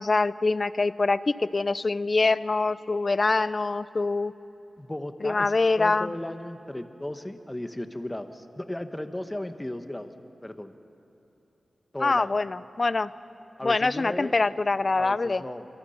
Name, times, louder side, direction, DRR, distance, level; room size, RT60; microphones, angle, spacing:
voice 1, 0.0-4.3 5.2-6.1 12.0-13.1 13.6-15.4, left 3 dB, 40° left, 16 dB, 0.5 m, -24 dB
voice 2, 4.8-10.1 10.4-10.7 11.9-12.4 13.6-14.3 14.9-15.7, left 1 dB, 15° left, 8 dB, 1.2 m, -36 dB
26.5 x 25.0 x 5.7 m, 3.0 s
wide cardioid pair, 95°, 0 cm